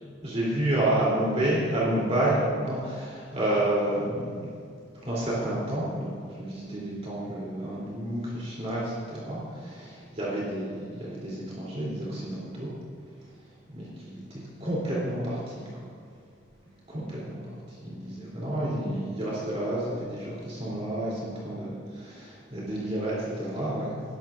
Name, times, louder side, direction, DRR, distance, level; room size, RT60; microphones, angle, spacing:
voice 1, 0.2-4.5 5.0-12.7 13.7-15.7 16.9-17.4 17.7-24.0, right 1 dB, 35° right, -7 dB, 3.2 m, -30 dB
19.5 x 12.5 x 2.5 m, 2.1 s
head